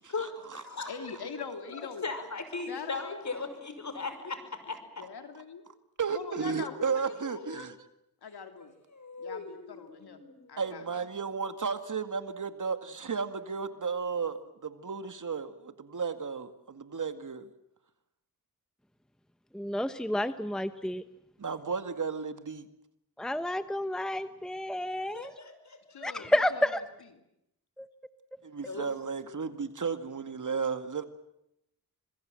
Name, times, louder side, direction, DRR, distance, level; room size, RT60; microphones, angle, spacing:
voice 1, 0.1-0.9 1.7-4.4 8.9-10.9 25.1-26.1 28.7-28.9, left 4 dB, 50° left, 9 dB, 5.7 m, -38 dB
voice 2, 0.9-2.1 2.7-3.2 5.0-5.6 6.1-7.7 8.2-8.7 9.2-10.2 10.5-10.8 25.9-26.6, left 5 dB, 80° left, 6 dB, 3.0 m, -42 dB
voice 3, 6.0-7.7 10.6-17.5 21.4-22.7 28.5-31.1, right 5 dB, 55° right, 9 dB, 2.1 m, -33 dB
voice 4, 19.5-21.0 23.2-25.3 26.0-26.8 27.8-27.9, left 1 dB, ahead, 11 dB, 1.0 m, -30 dB
26.0 x 22.0 x 7.7 m, 0.80 s
cardioid pair, 70°, 38 cm